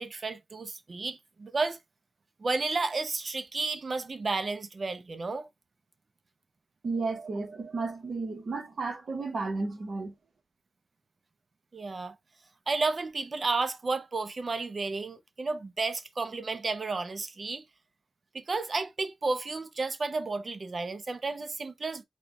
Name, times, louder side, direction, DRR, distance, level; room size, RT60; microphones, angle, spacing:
voice 1, 0.0-1.8 2.4-5.5 11.7-12.2 12.7-17.6 18.3-22.0, right 3 dB, 35° right, 0.5 m, -32 dB
voice 2, 6.8-10.2, right 3 dB, 50° right, 1.1 m, -33 dB
4.3 x 2.2 x 3.9 m
wide cardioid pair, 165°, 0 cm